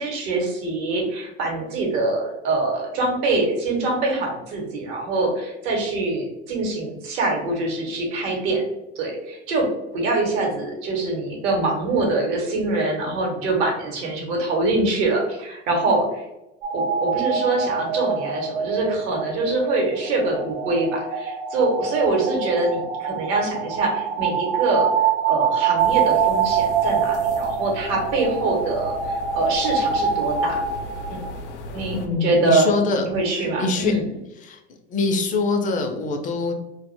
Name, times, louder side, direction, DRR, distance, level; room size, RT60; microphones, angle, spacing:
voice 1, 0.0-8.6 9.0-9.7 9.9-16.2 16.7-24.9 25.2-30.6 31.1-31.3 31.7-32.7 33.0-34.1, right 2 dB, 65° right, 0 dB, 0.9 m, -24 dB
sound 1, 16.6-31.3, right 6 dB, 45° right, 0.5 m, -25 dB
sound 2, 25.8-32.1, left 1 dB, 85° left, 0.6 m, -37 dB
voice 2, 31.9-33.0 33.3-33.9 34.4-34.6 34.9-36.5, left 3 dB, 25° left, 4 dB, 0.3 m, -24 dB
2.1 x 2.0 x 3.0 m, 0.93 s
hypercardioid pair, 100°, 34 cm